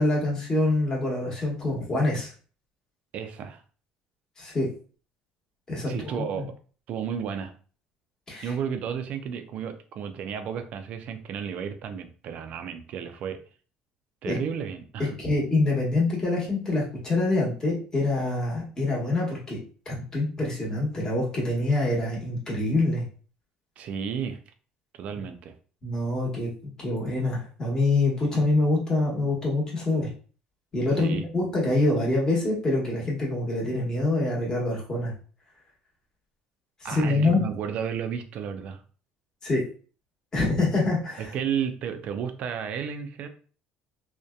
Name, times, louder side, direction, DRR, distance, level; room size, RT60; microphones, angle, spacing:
voice 1, 0.0-2.3 4.4-4.7 5.7-6.3 8.3-8.5 14.2-14.4 15.2-19.6 19.9-23.1 25.8-26.5 26.8-30.1 30.7-35.1 36.9-37.4 39.4-39.6 40.3-41.3, left 2 dB, 25° left, -4 dB, 1.1 m, -25 dB
voice 2, 3.1-3.6 5.9-6.5 6.9-7.5 8.4-13.4 14.2-15.1 23.8-24.4 25.0-25.5 31.0-31.2 36.8-38.8 41.2-43.3, right 7 dB, 55° right, 8 dB, 0.4 m, -32 dB
2.6 x 2.1 x 2.2 m, 0.40 s
cardioid pair, 120°, 3 cm